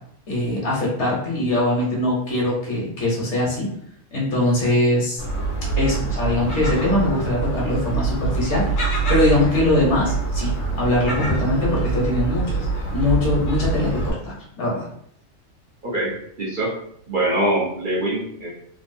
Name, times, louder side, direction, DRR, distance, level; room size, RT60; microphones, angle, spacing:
voice 1, 0.3-3.7 4.1-5.2 5.8-8.6 9.1-14.9, left 1 dB, 65° left, -4 dB, 1.3 m, -22 dB
Gull seagull, 5.2-14.1, right 4 dB, 80° left, 1.2 m, -25 dB
voice 2, 15.8-16.7 17.1-18.5, right 1 dB, 45° right, -6 dB, 0.9 m, -23 dB
3.4 x 2.5 x 2.6 m, 0.68 s
omnidirectional pair, 1.3 m